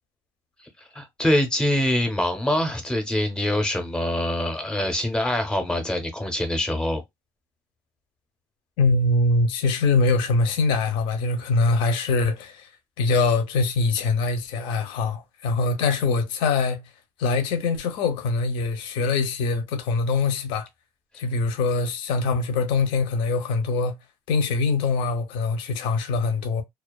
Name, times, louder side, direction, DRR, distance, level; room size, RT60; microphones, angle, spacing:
voice 1, 0.9-7.0, left 1 dB, 10° left, 0.6 m, -24 dB
voice 2, 8.8-12.7 13.0-16.8 17.2-20.7 21.1-23.9 24.3-26.6, left 3 dB, 75° left, 0.6 m, -23 dB
2.3 x 2.3 x 2.2 m
cardioid pair, 155°, 9 cm